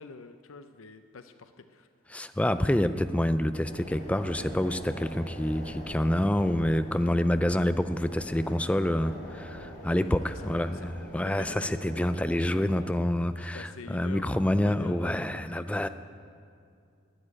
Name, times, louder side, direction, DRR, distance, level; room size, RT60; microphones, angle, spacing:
voice 1, 0.0-1.9 10.3-10.9 11.3-11.7 13.5-15.7, left 4 dB, 90° left, 9 dB, 0.6 m, -46 dB
voice 2, 2.1-15.9, left 1 dB, 5° left, 11 dB, 0.4 m, -27 dB
sound 1, 3.5-13.0, equal, 40° left, 3.3 m, -44 dB
13.0 x 8.9 x 9.8 m, 2.4 s
head